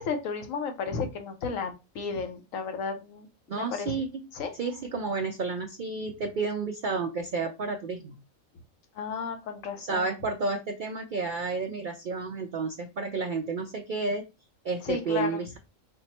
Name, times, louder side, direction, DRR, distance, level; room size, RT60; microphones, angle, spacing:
voice 1, 0.0-3.9 4.3-4.5 9.0-10.1 14.8-15.4, left 5 dB, 80° left, 1.1 m, -33 dB
voice 2, 3.5-4.3 4.6-8.2 9.8-14.2 14.6-15.6, right 4 dB, 75° right, 0.4 m, -31 dB
4.3 x 2.0 x 4.2 m
omnidirectional pair, 1.4 m